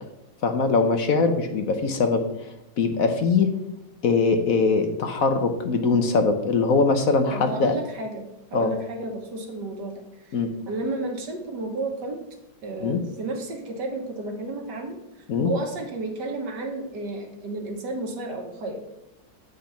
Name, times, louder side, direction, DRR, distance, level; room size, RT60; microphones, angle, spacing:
voice 1, 0.4-2.2 2.8-3.5 4.0-7.7 8.5-8.7 10.3-10.5 12.8-13.0 15.3-15.5, left 4 dB, 60° left, 6 dB, 1.1 m, -22 dB
voice 2, 7.3-10.4 10.7-12.2 12.6-15.0 15.4-18.9, right 2 dB, 75° right, 3 dB, 1.9 m, -32 dB
8.6 x 5.2 x 5.7 m, 0.92 s
omnidirectional pair, 1.9 m